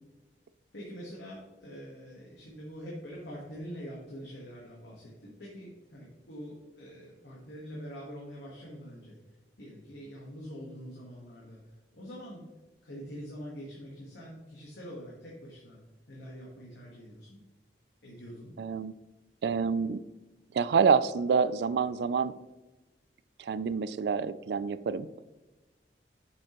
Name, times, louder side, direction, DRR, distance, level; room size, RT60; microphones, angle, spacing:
voice 1, 0.7-9.2 9.6-11.6 11.9-12.4 12.8-15.8 16.1-17.4 18.0-18.5, equal, 85° left, -4 dB, 1.4 m, -44 dB
voice 2, 18.6-18.9 19.4-20.0 20.5-22.4 23.4-25.1, right 6 dB, 70° right, 15 dB, 0.3 m, -27 dB
6.3 x 6.3 x 3.0 m, 1.1 s
head